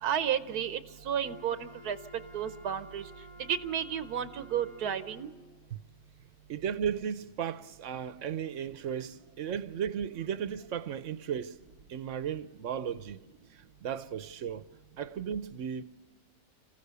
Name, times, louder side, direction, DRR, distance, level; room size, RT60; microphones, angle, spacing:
voice 1, 0.0-3.1 3.4-5.3, right 9 dB, 85° right, 1.4 m, -32 dB
Wind instrument woodwind instrument, 1.2-5.5, equal, 35° left, 2.0 m, -52 dB
voice 2, 6.5-11.6 11.9-13.2 13.5-14.6 15.0-15.8, right 8 dB, 60° right, 1.1 m, -35 dB
26.5 x 15.5 x 6.8 m
omnidirectional pair, 1.6 m